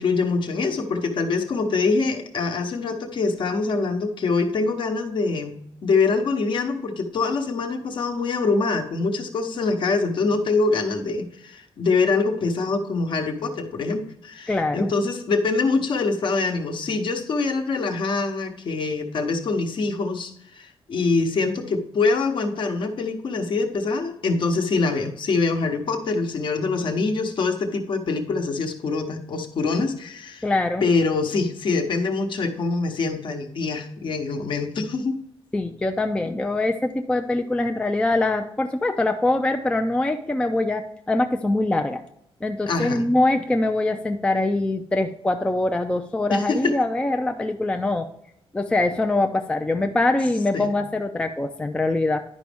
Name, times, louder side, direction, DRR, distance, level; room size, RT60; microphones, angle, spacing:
voice 1, 0.0-30.4 30.8-35.2 42.7-43.0 46.3-46.8 50.5-50.7, left 4 dB, 50° left, 5 dB, 0.9 m, -24 dB
voice 2, 14.5-14.9 30.4-30.9 35.5-42.0 42.4-48.1 48.5-52.2, left 2 dB, 10° left, 6 dB, 0.3 m, -23 dB
10.5 x 5.1 x 3.5 m, 0.74 s
wide cardioid pair, 170°, 10 cm